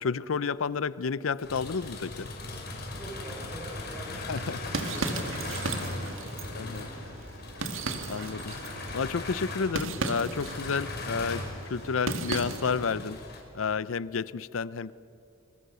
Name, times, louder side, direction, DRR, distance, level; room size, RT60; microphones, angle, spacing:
voice 1, 0.0-2.3 4.1-4.7 6.6-6.9 8.1-8.5 8.9-13.2 13.5-14.9, left 5 dB, 90° left, 18 dB, 0.6 m, -31 dB
sound 1, 1.4-13.4, left 2 dB, 50° left, 4.9 m, -39 dB
voice 2, 2.8-7.2 12.7-13.0, right 1 dB, 10° right, 0 dB, 6.0 m, -46 dB
sound 2, 4.3-12.9, right 3 dB, 80° right, 2.1 m, -36 dB
27.5 x 22.0 x 6.9 m, 2.6 s
head